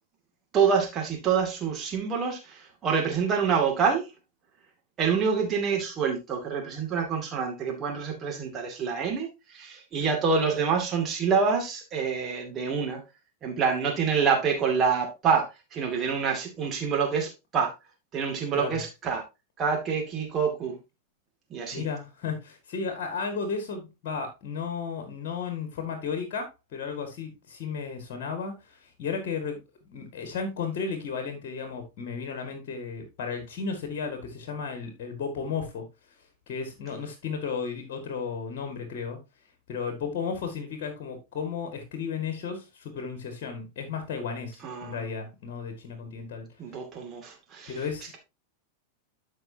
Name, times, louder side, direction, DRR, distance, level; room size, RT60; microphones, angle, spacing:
voice 1, 0.5-4.1 5.0-13.0 13.4-17.7 18.1-19.2 19.6-20.8 21.5-21.9 44.6-45.1 46.6-47.8, right 6 dB, 30° right, 2.4 m, -27 dB
voice 2, 21.7-29.6 29.8-35.8 36.5-39.2 39.7-46.5 47.7-48.2, left 5 dB, 45° left, 1.9 m, -34 dB
13.0 x 5.3 x 2.8 m
figure-of-eight pair, 90°, 0 cm